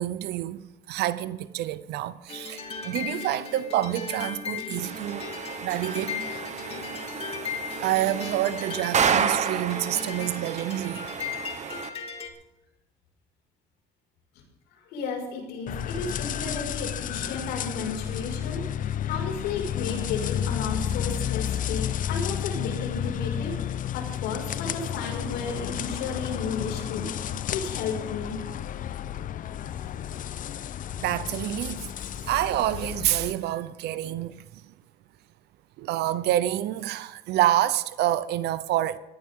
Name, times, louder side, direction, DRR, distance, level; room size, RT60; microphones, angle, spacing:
voice 1, 0.0-5.3 5.6-6.4 7.8-11.1 31.0-31.9 32.3-34.6 35.8-39.0, right 13 dB, 80° right, 0.8 m, -28 dB
sound 1, 2.3-12.3, left 6 dB, 35° left, 2.5 m, -36 dB
sound 2, 4.8-11.9, right 7 dB, 45° right, 1.2 m, -31 dB
voice 2, 14.9-23.5 23.9-27.1 27.5-28.4, left 4 dB, 90° left, 5.6 m, -33 dB
sound 3, 15.7-33.3, left 10 dB, 50° left, 0.7 m, -32 dB
19.0 x 14.5 x 3.8 m
cardioid pair, 110°, 17 cm